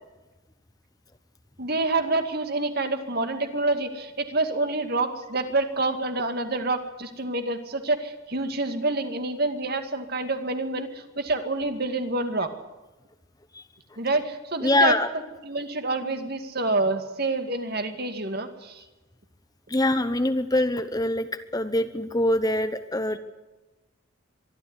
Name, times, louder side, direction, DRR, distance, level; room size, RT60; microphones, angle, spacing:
voice 1, 1.6-12.5 14.0-18.8, right 2 dB, 45° right, 7 dB, 2.2 m, -27 dB
voice 2, 14.6-15.1 19.7-21.3 21.5-23.2, left 1 dB, 20° left, 10 dB, 0.9 m, -23 dB
24.0 x 12.5 x 9.7 m, 1.1 s
head